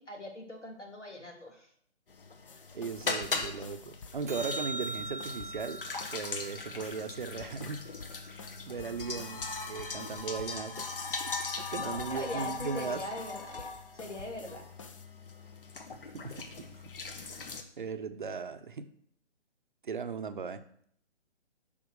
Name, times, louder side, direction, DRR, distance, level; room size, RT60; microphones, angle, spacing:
voice 1, 0.0-1.7 11.8-14.6, left 1 dB, 85° left, 2 dB, 2.8 m, -41 dB
sound 1, 2.1-17.6, left 4 dB, 50° left, 1.3 m, -40 dB
sound 2, 2.5-15.0, left 4 dB, 30° left, 0.8 m, -51 dB
voice 2, 2.7-5.9 6.1-7.8 8.7-10.9 11.2-11.3 11.7-13.0 16.1-16.5 17.3-18.9 19.8-20.6, right 5 dB, 45° right, 10 dB, 0.8 m, -37 dB
sound 3, 4.3-8.7 15.3-15.4, right 2 dB, 15° right, 0.5 m, -42 dB
8.8 x 5.7 x 6.6 m, 0.65 s
figure-of-eight pair, 140°, 35 cm